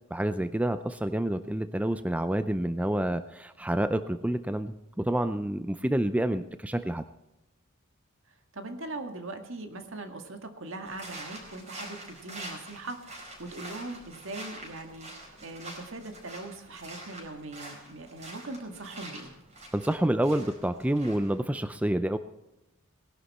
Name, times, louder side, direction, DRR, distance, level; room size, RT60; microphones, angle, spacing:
voice 1, 0.1-7.0 19.7-22.2, right 1 dB, 5° right, 11 dB, 0.4 m, -28 dB
voice 2, 8.3-19.3, right 2 dB, 65° right, 5 dB, 2.0 m, -41 dB
sound 1, 10.8-21.4, right 1 dB, 35° right, 4.7 m, -45 dB
19.0 x 11.5 x 4.3 m, 0.95 s
head